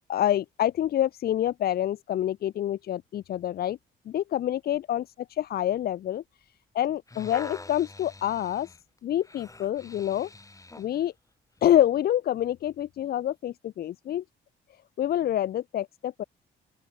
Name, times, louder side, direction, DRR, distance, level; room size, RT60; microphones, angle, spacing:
voice 1, 0.1-3.8 4.1-5.0 5.3-6.2 6.7-8.7 9.0-10.3 10.8-11.1 11.6-14.2 15.0-16.2, left 11 dB, 50° left, 0.4 m, -27 dB
sound 1, 6.8-10.9 11.6-11.7, left 2 dB, 15° left, 2.7 m, -45 dB
open air
cardioid pair, 90°, 20 cm